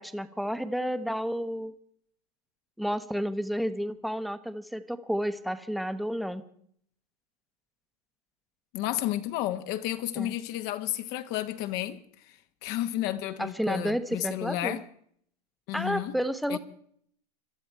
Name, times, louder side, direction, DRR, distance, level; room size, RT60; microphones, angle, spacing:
voice 1, 0.0-1.7 2.8-6.4 10.2-10.4 13.4-14.8 15.7-16.6, equal, ahead, 1.0 m, -31 dB
voice 2, 8.7-12.0 12.3-14.8 15.7-16.1 16.5-16.6, left 13 dB, 50° left, 1.3 m, -32 dB
22.0 x 13.0 x 4.6 m
hypercardioid pair, 100°, 21 cm